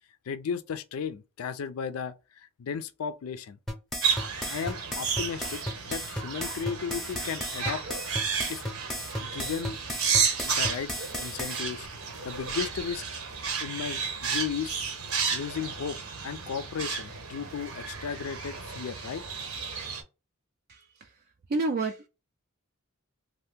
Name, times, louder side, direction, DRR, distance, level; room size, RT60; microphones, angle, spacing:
voice 1, 0.3-3.6 4.5-5.6 5.9-7.8 8.5-8.6 9.2-9.8 10.4-10.9 11.2-11.9 12.2-13.0 13.6-14.8 15.3-16.0 16.2-19.2, left 7 dB, 75° left, 0.4 m, -35 dB
sound 1, 3.7-11.6, equal, ahead, 0.7 m, -34 dB
sound 2, 4.0-20.0, right 6 dB, 75° right, 0.8 m, -32 dB
voice 2, 20.7-21.1 21.5-22.1, right 3 dB, 45° right, 0.4 m, -30 dB
2.8 x 2.5 x 3.4 m
head